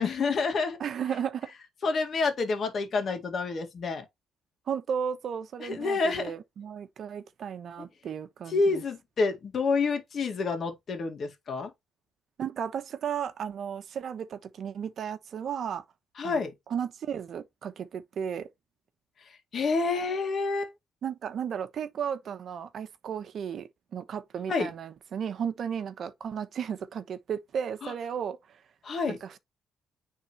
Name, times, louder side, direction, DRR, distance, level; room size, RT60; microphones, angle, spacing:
voice 1, 0.0-0.8 1.8-4.0 5.6-6.3 8.5-11.7 16.2-16.5 19.5-20.7 24.5-24.7 27.8-27.9 28.8-29.2, left 4 dB, 50° left, 1.9 m, -28 dB
voice 2, 0.8-1.5 4.7-8.8 12.4-15.8 16.2-16.4 16.7-18.5 21.0-28.6 29.1-29.4, right 8 dB, 60° right, 1.0 m, -34 dB
9.6 x 3.7 x 3.0 m
cardioid pair, 90°, 0 cm